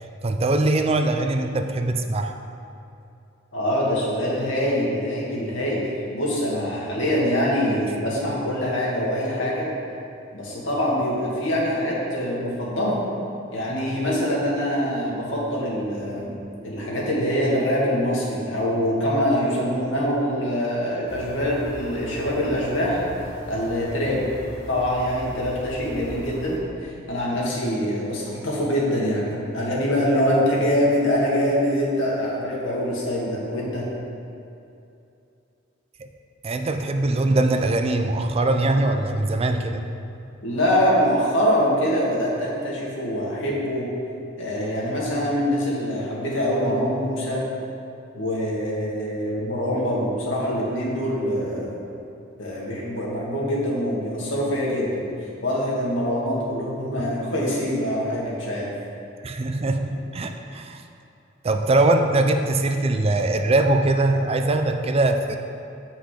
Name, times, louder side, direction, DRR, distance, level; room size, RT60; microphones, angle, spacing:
voice 1, 0.2-2.3 36.0-36.1 36.4-39.8 59.2-60.8 61.4-65.4, right 2 dB, 30° right, 6 dB, 0.4 m, -22 dB
voice 2, 3.5-5.8 6.1-9.7 10.3-13.0 13.5-23.0 23.5-24.2 24.7-33.9 40.4-43.9 44.4-47.4 48.1-51.8 52.4-55.0 55.4-58.7, equal, 70° left, -5 dB, 2.0 m, -24 dB
sound 1, 21.1-26.6, equal, 55° left, 1.3 m, -39 dB
7.8 x 5.6 x 5.0 m, 2.7 s
head